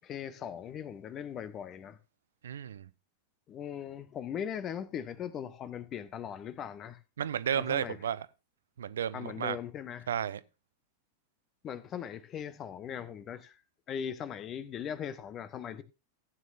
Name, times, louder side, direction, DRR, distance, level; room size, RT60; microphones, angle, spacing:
voice 1, 0.0-2.0 3.5-7.0 7.5-8.0 9.1-10.1 11.6-13.6 13.9-15.8, left 8 dB, 30° left, 1.0 m, -39 dB
voice 2, 2.4-2.9 7.2-8.3 8.8-9.6 10.1-10.4, right 9 dB, 65° right, 0.6 m, -32 dB
15.5 x 9.4 x 2.6 m
figure-of-eight pair, 90°, 0 cm